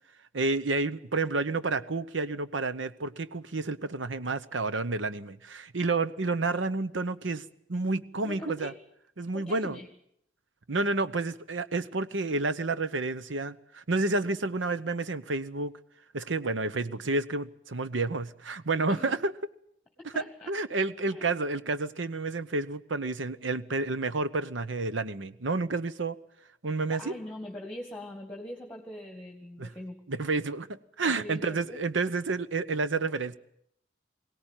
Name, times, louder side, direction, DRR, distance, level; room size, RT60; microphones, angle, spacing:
voice 1, 0.3-7.4 7.7-8.7 9.2-9.8 10.7-15.7 16.1-19.3 20.5-26.2 26.6-27.1 29.6-29.7 30.1-33.3, right 3 dB, 75° right, 13 dB, 0.9 m, -30 dB
voice 2, 8.2-8.8 9.3-9.9 18.9-19.2 20.0-20.6 21.1-21.3 26.9-30.0 31.1-31.8, left 1 dB, 5° left, 3 dB, 2.0 m, -42 dB
22.5 x 17.5 x 9.0 m, 0.73 s
head